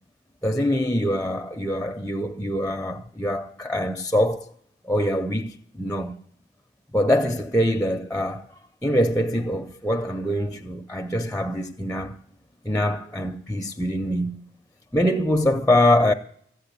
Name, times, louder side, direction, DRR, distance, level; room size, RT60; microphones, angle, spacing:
voice 1, 0.4-4.5 4.8-6.2 6.9-8.5 8.8-12.2 12.6-14.4 14.9-16.1, left 1 dB, 10° left, 0.5 m, -24 dB
14.0 x 8.7 x 8.3 m
head